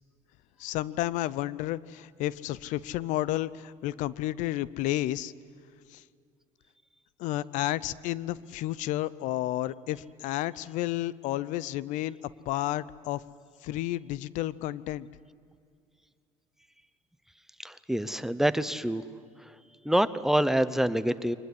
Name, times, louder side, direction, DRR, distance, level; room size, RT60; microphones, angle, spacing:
voice 1, 0.6-5.3 5.9-6.0 7.2-12.2 12.5-13.2 13.6-15.1, left 15 dB, 80° left, 19 dB, 0.6 m, -31 dB
voice 2, 17.6-19.0 19.4-19.5 19.8-21.4, equal, 5° right, 13 dB, 0.7 m, -26 dB
23.5 x 20.0 x 9.8 m, 2.2 s
cardioid pair, 120°, 13 cm